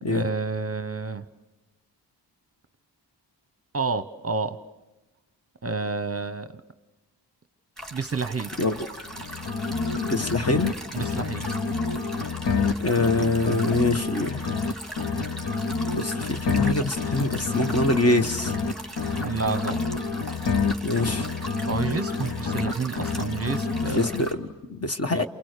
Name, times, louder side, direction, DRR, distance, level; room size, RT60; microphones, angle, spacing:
voice 1, 0.1-1.2 3.7-4.6 5.6-6.6 7.9-8.5 10.9-11.5 19.2-19.8 21.7-24.1 25.1-25.3, right 4 dB, 35° right, 11 dB, 0.9 m, -29 dB
sound 1, 7.8-24.3, right 1 dB, ahead, 2.9 m, -40 dB
sound 2, 9.1-10.7 11.0-14.7 15.0-18.7 19.0-22.7 23.0-24.4, left 4 dB, 70° left, 1.3 m, -28 dB
voice 2, 10.0-10.7 12.8-14.4 15.9-18.5 20.8-21.3 23.9-25.3, left 2 dB, 35° left, 7 dB, 1.3 m, -25 dB
29.5 x 28.5 x 6.7 m, 1.1 s
wide cardioid pair, 110°, 43 cm